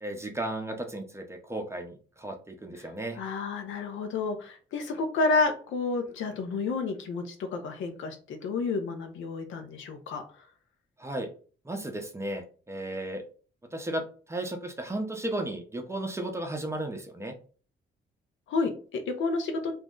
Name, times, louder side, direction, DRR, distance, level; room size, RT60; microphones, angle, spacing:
voice 1, 0.0-3.2 11.0-11.3 11.6-13.2 13.7-14.0 14.3-17.3, right 1 dB, 15° right, 4 dB, 0.6 m, -34 dB
voice 2, 3.2-10.2 18.5-19.7, left 3 dB, 75° left, 6 dB, 0.7 m, -30 dB
2.6 x 2.0 x 3.6 m, 0.39 s
cardioid pair, 90°, 20 cm